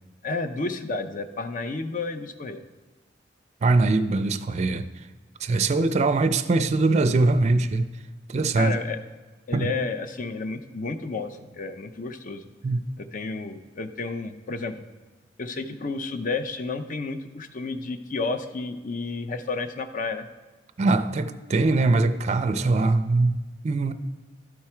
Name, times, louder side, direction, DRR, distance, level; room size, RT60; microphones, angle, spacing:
voice 1, 0.2-2.6 8.6-9.0 9.5-12.5 13.0-14.7 15.4-20.3, left 3 dB, 45° left, 0.6 m, -31 dB
voice 2, 3.6-4.9 5.4-7.9 8.3-8.8 9.5-9.7 12.6-12.8 20.8-23.9, right 3 dB, 40° right, 0.4 m, -22 dB
12.0 x 4.7 x 4.4 m
head